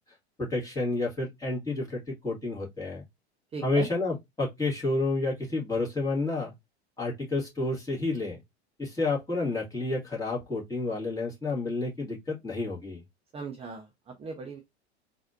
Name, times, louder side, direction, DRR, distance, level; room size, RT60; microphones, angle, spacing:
voice 1, 0.1-3.0 3.6-6.5 7.0-8.4 8.8-13.0, left 2 dB, 10° left, 2.1 m, -30 dB
voice 2, 3.5-3.9 13.3-14.6, right 4 dB, 15° right, 0.7 m, -38 dB
4.0 x 2.7 x 2.6 m
figure-of-eight pair, 85°, 34 cm